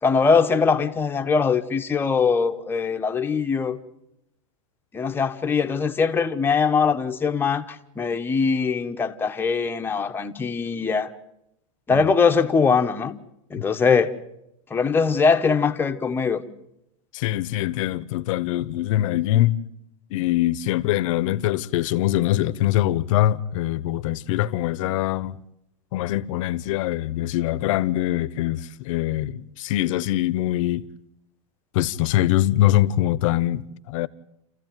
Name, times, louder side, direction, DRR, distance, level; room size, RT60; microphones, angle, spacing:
voice 1, 0.0-3.8 4.9-11.1 11.9-13.1 13.5-14.1 14.7-16.4, left 5 dB, 10° left, 1.2 m, -22 dB
voice 2, 17.1-19.6 20.1-25.4 25.9-30.9 31.7-34.1, left 14 dB, 60° left, 1.0 m, -23 dB
28.5 x 15.0 x 9.2 m
supercardioid pair, 150°, 19 cm